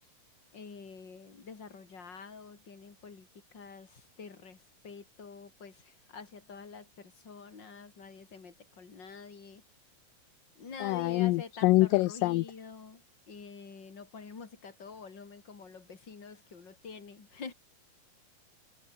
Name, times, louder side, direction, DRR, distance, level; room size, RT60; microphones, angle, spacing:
voice 1, 0.5-9.6 10.6-13.0 13.3-17.5, left 5 dB, 30° left, 3.7 m, -47 dB
voice 2, 10.8-12.5, left 19 dB, 80° left, 2.1 m, -25 dB
omnidirectional pair, 4.4 m